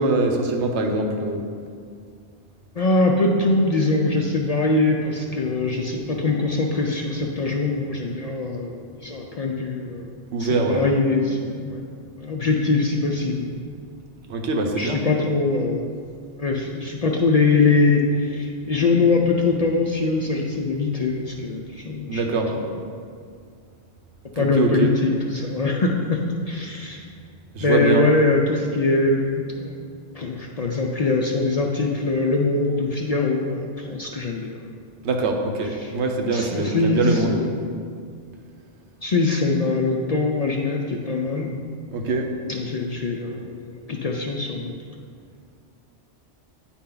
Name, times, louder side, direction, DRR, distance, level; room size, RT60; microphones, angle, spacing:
voice 1, 0.0-1.4 10.3-10.8 14.3-15.0 22.1-22.5 24.4-24.9 27.5-28.1 35.0-37.4 41.9-42.3, right 3 dB, 90° right, 3 dB, 1.1 m, -23 dB
voice 2, 2.7-10.1 10.4-11.9 12.2-13.5 14.8-15.8 16.4-22.2 24.4-27.0 27.6-29.9 30.1-34.8 35.6-35.9 36.3-37.7 39.0-41.5 42.5-44.8, left 3 dB, 55° left, 0 dB, 0.4 m, -22 dB
9.1 x 4.3 x 3.8 m, 2.2 s
omnidirectional pair, 1.1 m